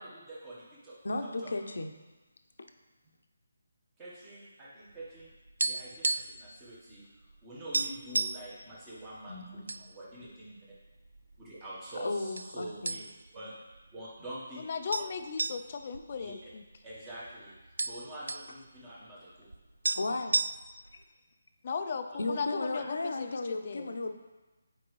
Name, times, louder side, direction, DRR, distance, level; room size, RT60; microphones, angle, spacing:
voice 1, 0.0-1.5 4.0-5.3 5.6-7.0 7.4-9.4 9.7-10.5 11.4-13.1 13.3-13.5 13.9-14.6 16.2-16.3 16.8-19.5 22.7-22.8, right 1 dB, 10° right, -7 dB, 1.1 m, -45 dB
voice 2, 1.0-1.9 2.6-2.7 9.3-9.7 12.0-13.0 19.9-20.4 22.2-24.1, left 2 dB, 70° left, 6 dB, 0.7 m, -35 dB
sound 1, 5.0-6.5 6.7-6.9 7.3-7.4 7.7-8.5 9.2-9.8 10.2-10.3 11.0-11.7 12.4-12.5 12.9-13.4 13.7-13.8 14.9-17.0 17.3-17.4 17.6-18.5 19.5-19.6 19.8-20.9, right 3 dB, 85° right, 0.3 m, -32 dB
voice 3, 14.6-16.6 21.6-23.4 23.6-23.9, left 5 dB, 30° left, 7 dB, 0.3 m, -36 dB
8.6 x 4.6 x 3.1 m, 1.2 s
hypercardioid pair, 175°, 0 cm